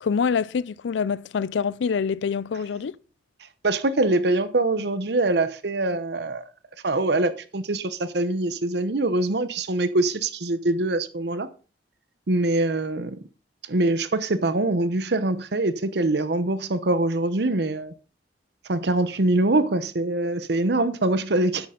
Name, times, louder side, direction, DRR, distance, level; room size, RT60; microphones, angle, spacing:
voice 1, 0.0-3.0, left 6 dB, 80° left, 0.4 m, -25 dB
voice 2, 3.6-6.4 6.8-11.5 12.3-13.2 13.7-17.9 18.7-21.7, right 2 dB, 65° right, 0.8 m, -23 dB
10.5 x 8.5 x 3.8 m
head